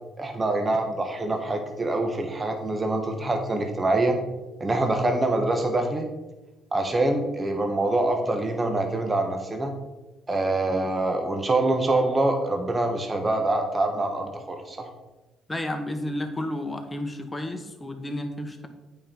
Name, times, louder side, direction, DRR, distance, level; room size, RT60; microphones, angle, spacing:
voice 1, 0.2-4.2 4.6-6.1 6.7-9.7 10.3-14.9, right 2 dB, 25° right, 4 dB, 1.3 m, -25 dB
voice 2, 15.5-18.7, left 1 dB, 20° left, 5 dB, 1.4 m, -31 dB
8.8 x 5.5 x 4.4 m, 1.1 s
supercardioid pair, 60°, 0 cm